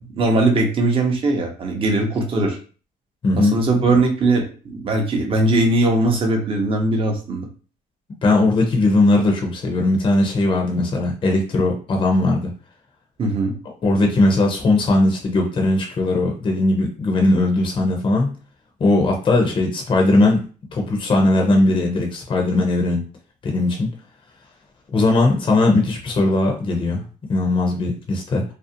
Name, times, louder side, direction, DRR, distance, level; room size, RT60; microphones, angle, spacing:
voice 1, 0.1-2.6 3.4-7.5 13.2-13.6, right 2 dB, 30° right, 2 dB, 0.6 m, -20 dB
voice 2, 3.2-3.5 8.2-12.5 13.8-18.3 18.8-20.4 20.7-23.0 23.4-23.9 24.9-27.0 27.3-28.4, left 2 dB, 30° left, 1 dB, 0.5 m, -18 dB
2.5 x 2.0 x 2.6 m, 0.38 s
cardioid pair, 110°, 17 cm